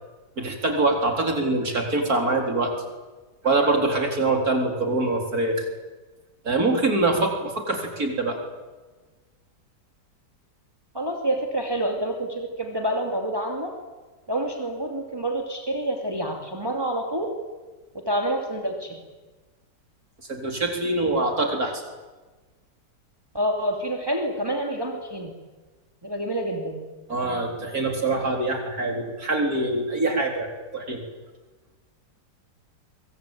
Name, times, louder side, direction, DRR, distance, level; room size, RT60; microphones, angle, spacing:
voice 1, 0.4-2.7 3.4-5.6 6.4-8.4 20.3-21.8 27.1-31.0, right 2 dB, 55° right, 3 dB, 4.6 m, -24 dB
voice 2, 10.9-13.7 14.3-17.3 17.9-19.0 23.3-25.3 26.0-26.8, right 1 dB, 15° right, 2 dB, 2.7 m, -27 dB
24.5 x 23.5 x 9.1 m, 1.3 s
omnidirectional pair, 1.8 m